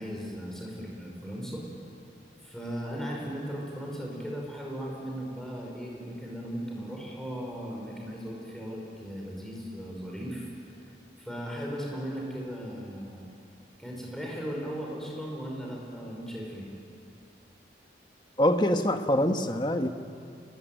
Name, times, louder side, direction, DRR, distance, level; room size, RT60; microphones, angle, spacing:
voice 1, 0.0-1.6 2.4-10.5 11.2-13.3 13.8-16.7, equal, 5° left, -2 dB, 5.3 m, -37 dB
voice 2, 18.4-19.9, left 1 dB, 25° left, 6 dB, 1.2 m, -24 dB
29.5 x 20.0 x 9.2 m, 2.5 s
head